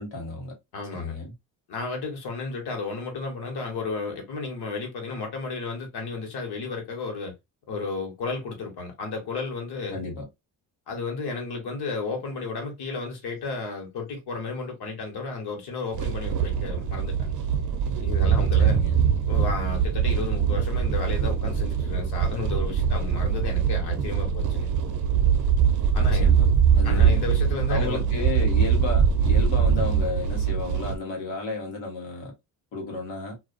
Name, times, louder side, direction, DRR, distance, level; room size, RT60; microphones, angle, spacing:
voice 1, 0.0-0.5 0.9-1.3 9.9-10.3 18.6-19.0 26.2-26.4 26.8-27.2 27.7-32.3 32.7-33.3, left 3 dB, 80° left, 1.3 m, -32 dB
voice 2, 0.7-1.2 1.7-7.3 7.7-10.0 10.9-17.3 17.9-18.8 19.3-24.7 25.9-26.3 26.8-28.0, left 4 dB, 65° left, 1.3 m, -33 dB
sound 1, 15.9-31.0, right 7 dB, 45° right, 0.6 m, -22 dB
2.4 x 2.3 x 2.4 m
supercardioid pair, 65°, 43 cm